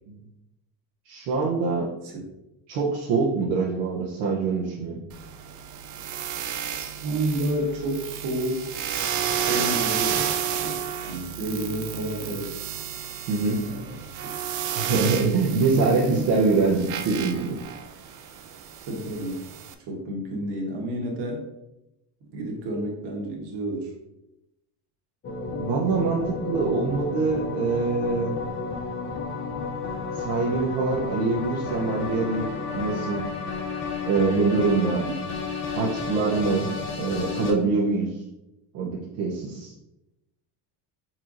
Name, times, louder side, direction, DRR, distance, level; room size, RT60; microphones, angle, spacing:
voice 1, 1.1-1.9 2.7-5.0 13.3-13.6 14.8-17.6 25.6-28.4 30.1-32.5 32.7-33.2 34.0-35.0 35.7-36.7 37.0-38.1 38.7-39.7, right 4 dB, 75° right, -4 dB, 0.9 m, -24 dB
sound 1, 5.1-19.7, right 9 dB, 45° right, 0.4 m, -32 dB
voice 2, 6.7-8.7 9.5-10.3 10.6-12.6 13.6-14.1 15.2-16.3 18.8-19.5 19.8-21.5 22.3-23.9 35.0-35.3, right 1 dB, 60° right, 0 dB, 1.4 m, -30 dB
sound 2, 25.2-37.5, left 4 dB, 25° left, 0.6 m, -32 dB
4.5 x 4.4 x 2.5 m, 0.91 s
cardioid pair, 140°, 45 cm